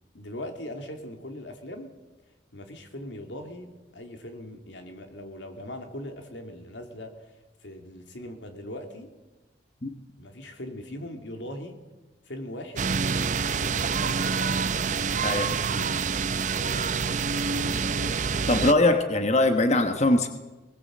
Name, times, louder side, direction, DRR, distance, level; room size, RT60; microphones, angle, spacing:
voice 1, 0.1-1.9 2.5-7.3 7.6-9.1 10.2-11.8 12.2-13.0 13.4-18.2, left 1 dB, 85° left, 5 dB, 2.9 m, -40 dB
sound 1, 12.8-18.7, right 5 dB, 45° right, 0.6 m, -27 dB
voice 2, 15.2-15.9 18.5-20.3, left 2 dB, 40° left, 7 dB, 1.2 m, -22 dB
20.5 x 19.0 x 7.6 m, 1.2 s
head